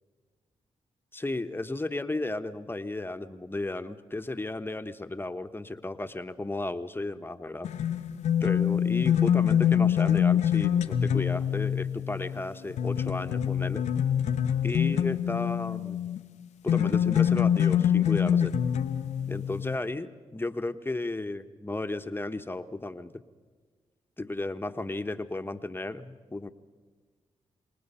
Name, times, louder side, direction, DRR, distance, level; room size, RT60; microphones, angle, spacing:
voice 1, 1.1-7.7 8.4-13.9 14.6-16.1 16.6-18.6 19.3-23.1 24.2-26.5, left 2 dB, 20° left, 9 dB, 1.1 m, -34 dB
sound 1, 7.6-16.3 16.7-19.8, left 9 dB, 85° left, 0.8 m, -25 dB
27.0 x 19.5 x 5.6 m, 1.5 s
cardioid pair, 60°, 12 cm